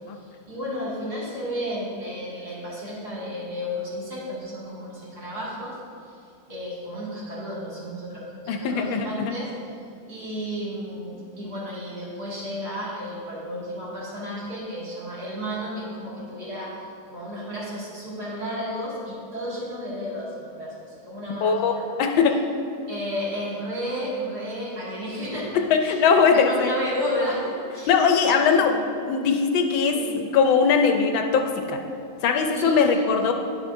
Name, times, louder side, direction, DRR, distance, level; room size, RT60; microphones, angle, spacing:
voice 1, 0.1-6.2 6.5-9.5 10.1-21.8 22.9-26.0 26.3-27.9 28.2-28.8 29.9-30.1 32.5-33.1, equal, 50° right, -8 dB, 2.6 m, -32 dB
voice 2, 8.5-9.3 21.4-22.4 25.5-26.7 27.9-28.7 29.0-31.8 32.2-33.3, left 5 dB, 80° left, 5 dB, 1.3 m, -20 dB
10.5 x 7.2 x 2.6 m, 2.4 s
omnidirectional pair, 2.2 m